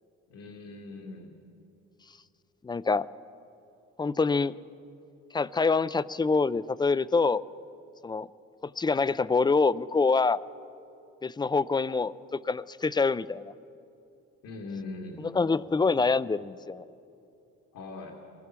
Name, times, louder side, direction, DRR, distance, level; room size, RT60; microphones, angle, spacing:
voice 1, 0.3-1.3 14.4-15.2 17.7-18.2, left 3 dB, 80° left, 0 dB, 2.2 m, -41 dB
voice 2, 2.6-3.1 4.0-4.6 5.3-7.4 8.0-8.3 8.6-10.4 11.2-13.5 15.2-16.9, left 4 dB, 15° left, 17 dB, 0.4 m, -26 dB
23.5 x 19.0 x 6.1 m, 2.7 s
cardioid pair, 90°, 30 cm